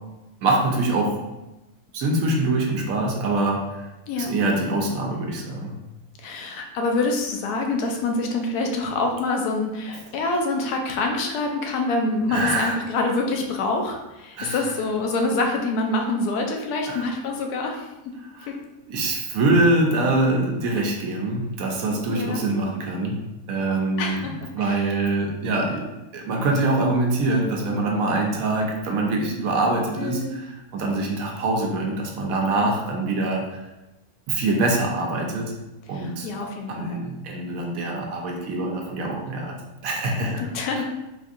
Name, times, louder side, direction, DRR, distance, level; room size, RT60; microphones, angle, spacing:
voice 1, 0.4-1.2 1.9-3.9 4.2-5.8 12.3-12.8 14.4-14.6 16.9-17.0 18.3-18.5 18.9-24.2 24.5-25.9 26.1-33.6 34.3-35.5 35.9-36.3 36.7-39.6 39.8-40.5 40.7-40.8, right 2 dB, 70° right, 1 dB, 1.0 m, -24 dB
voice 2, 6.2-17.9 18.5-18.6 22.1-22.4 24.0-24.8 30.0-30.3 32.4-32.7 35.9-37.0 40.5-40.8, left 2 dB, 85° left, 2 dB, 1.1 m, -26 dB
3.9 x 2.6 x 2.5 m, 1.0 s
omnidirectional pair, 1.6 m